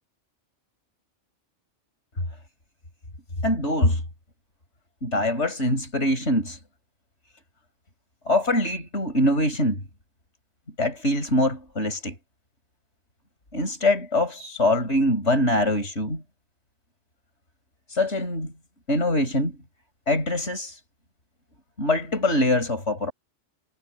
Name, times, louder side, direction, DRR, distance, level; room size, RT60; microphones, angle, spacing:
voice 1, 3.4-4.0 5.0-6.6 8.3-9.8 10.8-12.1 13.5-16.2 17.9-18.5 18.9-19.6 20.1-20.8 21.8-23.1, left 1 dB, 65° left, 6.0 m, -23 dB
omnidirectional pair, 1.3 m